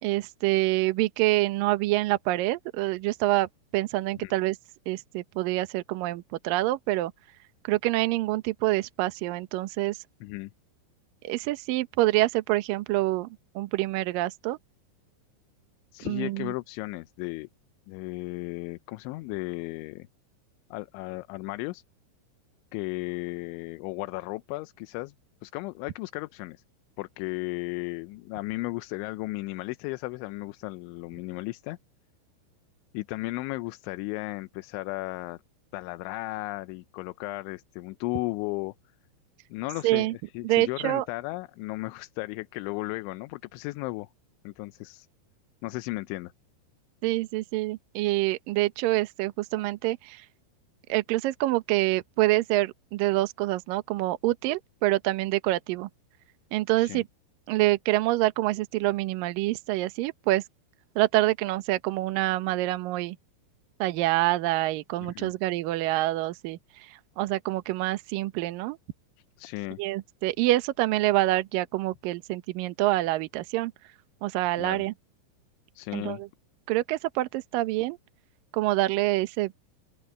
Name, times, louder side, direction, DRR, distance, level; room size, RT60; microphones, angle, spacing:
voice 1, 0.0-4.6 4.9-7.1 7.6-10.0 11.2-13.3 13.6-14.6 16.1-16.5 39.8-40.1 40.4-41.0 47.0-50.2 50.9-55.9 56.5-57.1 57.5-60.4 61.0-63.2 63.8-66.9 67.2-68.8 69.8-73.7 74.2-74.9 75.9-76.3 76.7-78.0 78.5-79.5, right 17 dB, 80° right, 2.0 m, -26 dB
voice 2, 10.2-10.5 15.9-17.5 17.9-20.1 20.7-21.8 22.7-25.1 25.4-26.6 27.0-31.8 32.9-35.4 35.7-38.7 39.5-44.1 44.4-45.1 45.6-46.3 56.8-57.0 65.0-65.3 69.4-69.8 74.6-74.9 75.7-76.2, left 21 dB, 85° left, 3.1 m, -35 dB
open air
omnidirectional pair, 5.5 m